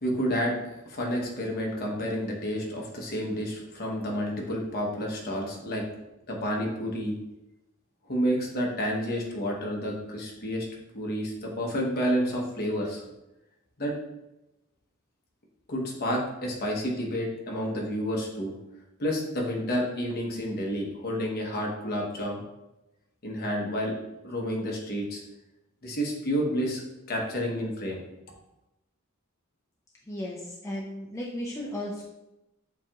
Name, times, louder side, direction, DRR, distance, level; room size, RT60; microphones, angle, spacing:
voice 1, 0.0-5.8 6.3-7.1 8.1-10.7 10.9-13.1 13.8-13.9 15.7-18.5 19.0-22.4 23.2-23.9 24.2-25.2 25.8-28.0, equal, 50° left, -1 dB, 1.0 m, -30 dB
voice 2, 30.1-32.0, left 1 dB, 15° left, -3 dB, 0.5 m, -35 dB
7.0 x 2.9 x 2.4 m, 0.96 s
head